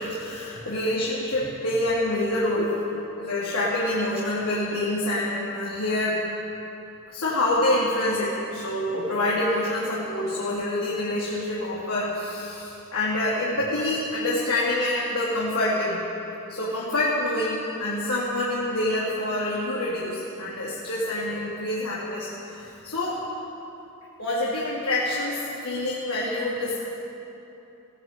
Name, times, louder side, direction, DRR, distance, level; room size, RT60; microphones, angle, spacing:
voice 1, 0.0-2.7 3.2-6.2 7.1-16.0 16.5-23.2 24.2-26.8, left 1 dB, 90° left, -8 dB, 3.5 m, -26 dB
17.0 x 16.5 x 9.1 m, 3.0 s
head